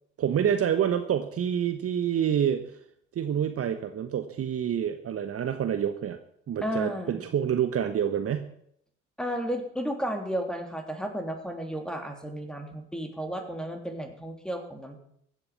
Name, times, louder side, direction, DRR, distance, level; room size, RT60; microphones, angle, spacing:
voice 1, 0.2-2.8 3.1-6.2 6.5-8.5, right 9 dB, 40° right, 8 dB, 1.2 m, -27 dB
voice 2, 6.6-7.2 9.2-15.0, equal, ahead, 4 dB, 3.3 m, -33 dB
15.5 x 9.0 x 7.2 m, 0.69 s
hypercardioid pair, 60°, 35 cm